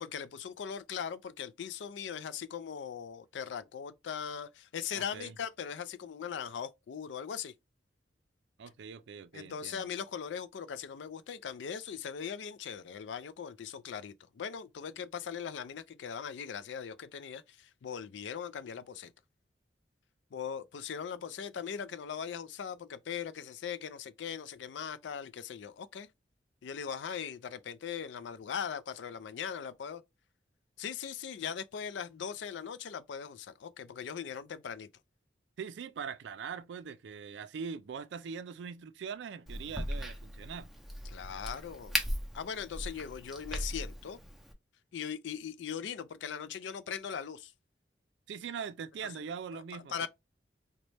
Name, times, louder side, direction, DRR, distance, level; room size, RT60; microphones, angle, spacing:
voice 1, 0.0-7.5 9.3-19.1 20.3-26.1 26.6-30.0 30.8-34.9 41.1-42.0 42.3-44.2 44.9-47.5 49.5-50.1, left 7 dB, 80° left, 0.4 m, -40 dB
voice 2, 4.9-5.3 8.6-9.9 35.6-40.7 48.3-50.1, right 6 dB, 75° right, 0.4 m, -42 dB
Crack, 39.5-44.5, equal, ahead, 0.5 m, -38 dB
4.0 x 2.2 x 3.2 m
head